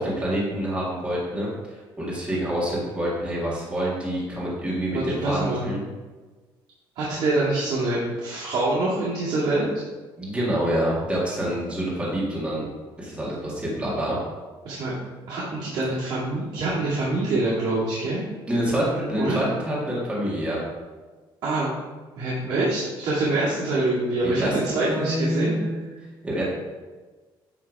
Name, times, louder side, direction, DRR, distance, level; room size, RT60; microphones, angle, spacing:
voice 1, 0.0-5.8 10.2-12.7 13.0-14.2 18.5-20.6 24.2-25.9 26.2-26.4, equal, 10° right, -6 dB, 1.9 m, -27 dB
voice 2, 4.9-5.7 7.0-9.7 14.6-14.9 15.3-18.2 19.2-19.4 21.4-21.7 22.2-25.6, right 2 dB, 65° right, -9 dB, 2.1 m, -25 dB
9.9 x 3.6 x 4.6 m, 1.3 s
cardioid pair, 170°, 9 cm